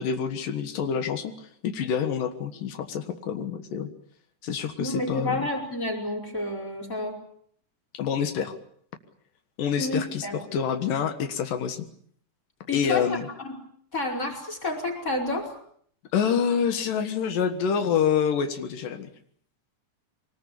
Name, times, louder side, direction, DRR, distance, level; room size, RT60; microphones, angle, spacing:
voice 1, 0.0-3.9 4.4-5.4 7.9-8.6 9.6-11.9 12.7-13.3 16.1-19.1, left 7 dB, 90° left, 8 dB, 3.2 m, -27 dB
voice 2, 4.8-7.2 9.8-10.4 12.7-13.2 13.4-13.5 13.9-15.5, left 2 dB, 20° left, 4 dB, 5.4 m, -30 dB
24.0 x 19.5 x 8.5 m, 0.63 s
omnidirectional pair, 3.7 m